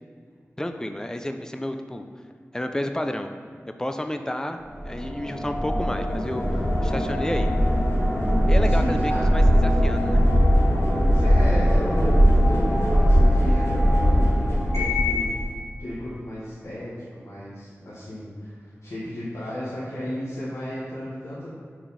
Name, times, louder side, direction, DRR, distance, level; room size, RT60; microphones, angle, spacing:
voice 1, 0.6-2.0 2.5-3.3 3.8-7.5 8.5-10.3, left 1 dB, 15° left, 6 dB, 0.5 m, -31 dB
sound 1, 4.7-15.3, equal, 65° left, 1.6 m, -20 dB
voice 2, 8.7-9.3 11.1-15.3 15.8-21.5, equal, 80° left, -10 dB, 1.5 m, -34 dB
6.0 x 5.0 x 4.1 m, 2.1 s
wide cardioid pair, 70°, 5 cm